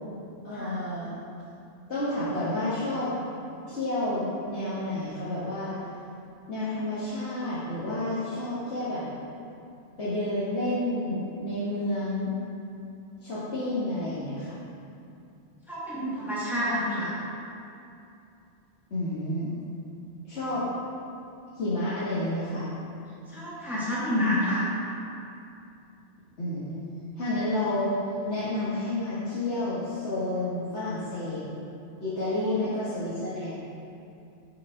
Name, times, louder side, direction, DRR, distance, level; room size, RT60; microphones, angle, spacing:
voice 1, 0.4-1.1 1.9-3.1 3.7-5.7 6.5-9.0 10.0-12.3 13.2-14.6 18.9-19.5 20.2-20.7 21.5-22.7 26.4-26.8 27.2-27.9 28.2-31.4 32.0-33.6, left 1 dB, 75° left, -12 dB, 2.0 m, -30 dB
voice 2, 15.7-17.1 23.3-24.6, left 1 dB, ahead, -11 dB, 2.2 m, -28 dB
12.0 x 5.9 x 3.8 m, 2.6 s
omnidirectional pair, 1.1 m